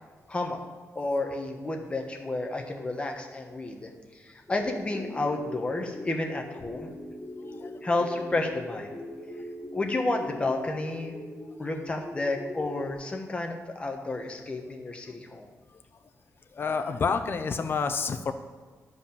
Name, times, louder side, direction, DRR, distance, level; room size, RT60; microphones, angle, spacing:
voice 1, 0.3-0.6 0.9-6.9 7.8-9.0 9.7-11.2 11.6-15.5, left 2 dB, 20° left, 3 dB, 1.2 m, -31 dB
sound 1, 4.5-12.9, left 2 dB, 5° left, 2.7 m, -41 dB
voice 2, 16.6-18.3, left 5 dB, 40° left, 7 dB, 0.7 m, -28 dB
11.0 x 5.2 x 7.0 m, 1.5 s
wide cardioid pair, 175°, 6 cm